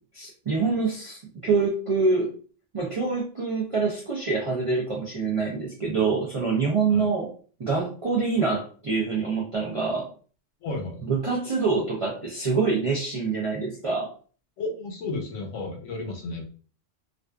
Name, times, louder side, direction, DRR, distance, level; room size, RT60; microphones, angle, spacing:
voice 1, 0.1-2.3 2.7-7.3 7.6-10.1 11.0-14.1, right 4 dB, 50° right, -4 dB, 0.4 m, -25 dB
voice 2, 10.6-11.1 14.6-16.4, left 3 dB, 80° left, 2 dB, 1.1 m, -33 dB
2.5 x 2.3 x 2.2 m, 0.39 s
omnidirectional pair, 1.3 m